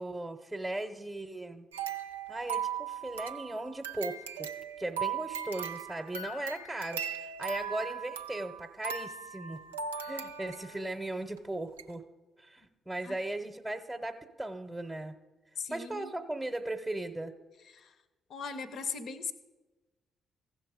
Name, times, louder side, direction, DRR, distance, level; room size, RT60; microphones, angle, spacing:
voice 1, 0.0-1.7 2.3-4.5 4.8-9.6 10.0-12.0 12.4-15.1 15.7-17.3, right 1 dB, 5° right, 4 dB, 0.8 m, -37 dB
sound 1, 1.7-10.9 11.4-11.5 11.8-11.9, right 7 dB, 90° right, 0.3 m, -38 dB
voice 2, 15.6-16.1 17.7-17.9 18.3-19.3, left 5 dB, 60° left, 10 dB, 0.7 m, -38 dB
15.0 x 5.8 x 5.0 m, 1.2 s
hypercardioid pair, 45°, 0 cm